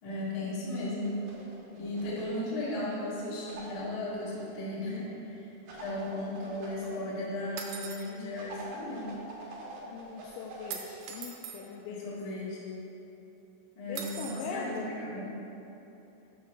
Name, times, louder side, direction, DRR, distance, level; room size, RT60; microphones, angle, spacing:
voice 1, 0.0-1.2 1.7-5.5 5.8-9.1 12.0-12.6 13.7-15.3, left 1 dB, 50° left, -8 dB, 1.5 m, -36 dB
sound 1, 1.0-2.4 3.5-4.4 5.7-6.9 8.3-10.8, right 2 dB, 65° right, 2.3 m, -46 dB
sound 2, 7.6-8.1 10.7-11.6 14.0-14.5, right 7 dB, 85° right, 2.9 m, -40 dB
voice 2, 9.8-12.2 13.9-14.9, left 5 dB, 90° left, 0 dB, 2.6 m, -41 dB
6.8 x 6.4 x 6.0 m, 3.0 s
omnidirectional pair, 5.9 m